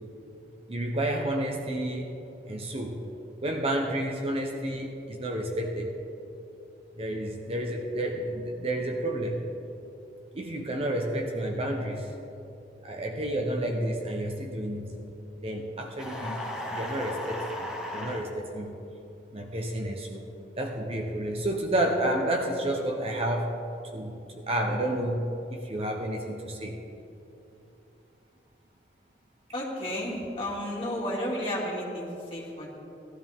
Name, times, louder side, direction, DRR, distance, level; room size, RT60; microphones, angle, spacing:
voice 1, 0.7-2.2 2.4-3.0 3.4-5.9 7.0-9.4 10.3-12.1 12.8-15.0 15.4-18.8 19.3-20.2 20.6-23.6 23.9-26.8, right 1 dB, 35° right, 2 dB, 1.0 m, -30 dB
sound 1, 16.0-18.2, left 1 dB, 5° right, 1.6 m, -36 dB
voice 2, 29.5-32.7, equal, 30° left, -5 dB, 2.9 m, -32 dB
18.5 x 13.0 x 3.7 m, 3.0 s
head